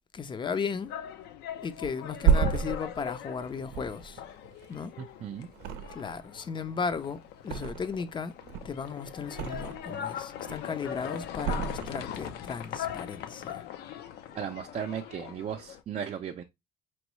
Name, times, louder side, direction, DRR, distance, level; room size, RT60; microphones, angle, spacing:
voice 1, 0.1-0.9 1.6-4.2 4.7-4.9 5.9-8.3 8.6-13.6, left 5 dB, 30° left, 0.5 m, -35 dB
sound 1, 0.7-15.8, left 10 dB, 75° left, 0.6 m, -41 dB
Thump thud, 1.8-5.1 5.5-6.3 6.6-8.1 8.4-10.0 10.3-10.9 11.4-12.4 12.7-12.9, right 8 dB, 90° right, 0.6 m, -31 dB
voice 2, 14.3-16.4, right 8 dB, 40° right, 0.5 m, -36 dB
4.4 x 3.1 x 3.0 m
cardioid pair, 110°, 17 cm